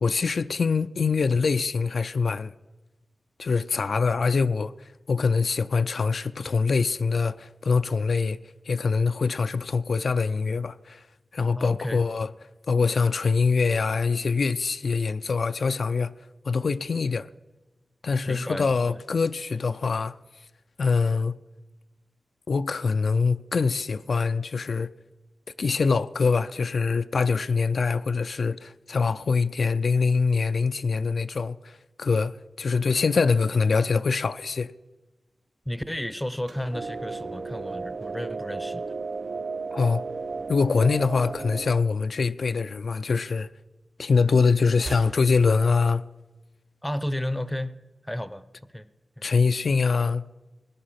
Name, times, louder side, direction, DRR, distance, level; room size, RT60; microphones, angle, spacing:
voice 1, 0.0-2.5 3.4-4.7 5.1-8.4 8.7-11.0 11.3-12.3 12.7-16.1 16.5-17.3 18.0-20.1 20.8-21.3 22.5-24.9 25.6-31.7 32.0-34.7 39.7-40.0 40.5-43.5 44.0-46.0 49.2-50.2, left 4 dB, 65° left, 0.4 m, -24 dB
voice 2, 11.6-12.0 18.3-19.0 35.7-38.8 46.8-47.8 48.0-48.5 48.7-48.9 49.2-49.3, left 1 dB, 5° left, 0.6 m, -32 dB
sound 1, 36.4-38.7 39.0-39.6 40.7-41.7 41.9-42.1 43.2-43.3 44.7-45.7, right 3 dB, 75° right, 4.3 m, -44 dB
sound 2, 36.7-41.8, right 4 dB, 50° right, 0.4 m, -34 dB
18.0 x 10.5 x 5.8 m
wide cardioid pair, 120°, 0 cm